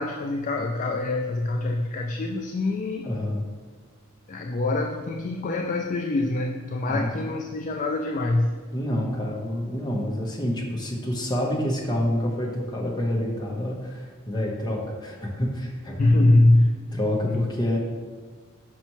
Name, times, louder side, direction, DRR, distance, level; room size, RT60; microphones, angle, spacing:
voice 1, 0.0-3.1 4.3-8.5 16.0-16.7 17.2-17.5, left 2 dB, 35° left, 2 dB, 0.3 m, -24 dB
voice 2, 3.0-3.4 6.9-7.1 8.7-16.0 16.9-17.8, left 1 dB, 20° left, -2 dB, 0.9 m, -27 dB
5.9 x 5.5 x 3.0 m, 1.5 s
head